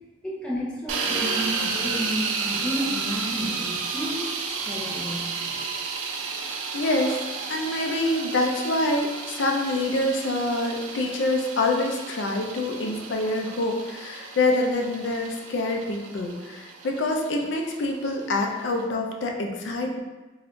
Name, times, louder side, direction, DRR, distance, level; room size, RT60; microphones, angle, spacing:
voice 1, 0.2-4.4 4.7-5.6, equal, 5° left, -6 dB, 0.6 m, -32 dB
sound 1, 0.9-18.8, right 5 dB, 85° right, 0.4 m, -32 dB
voice 2, 6.7-7.2 7.5-20.0, left 2 dB, 65° left, 2 dB, 0.4 m, -26 dB
2.5 x 2.3 x 3.6 m, 1.2 s
head